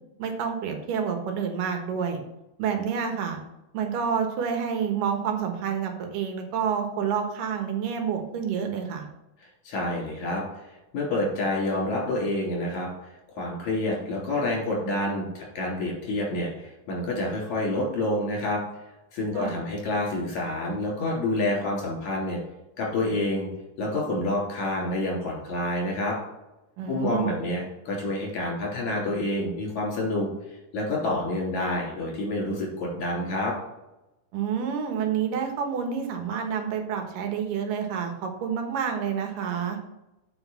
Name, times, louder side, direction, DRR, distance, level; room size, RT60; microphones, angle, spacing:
voice 1, 0.2-2.2 2.6-3.4 3.7-9.0 19.3-19.6 26.8-27.4 34.3-39.8, right 7 dB, 80° right, 4 dB, 2.9 m, -28 dB
voice 2, 9.6-10.4 10.9-18.6 19.1-22.4 22.8-23.5 23.8-26.2 26.9-30.3 30.7-33.5, left 1 dB, 60° left, -2 dB, 4.3 m, -28 dB
8.1 x 5.3 x 5.7 m, 0.94 s
omnidirectional pair, 3.8 m